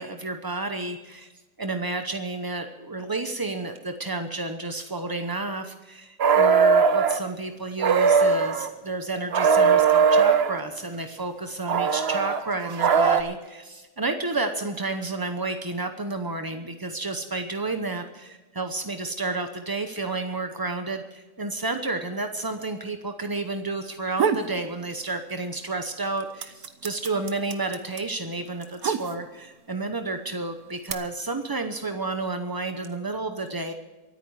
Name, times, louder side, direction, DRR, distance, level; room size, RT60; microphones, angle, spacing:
voice 1, 0.0-1.3 1.6-33.7, right 2 dB, 30° right, 6 dB, 0.4 m, -31 dB
sound 1, 6.2-7.2 7.8-8.7 9.3-10.6 11.7-13.2, right 6 dB, 50° right, 0.9 m, -19 dB
sound 2, 23.9-24.5 24.9-25.7 25.9-29.5 30.3-30.9, right 7 dB, 65° right, 1.4 m, -28 dB
24.0 x 9.2 x 4.8 m, 1.2 s
omnidirectional pair, 1.8 m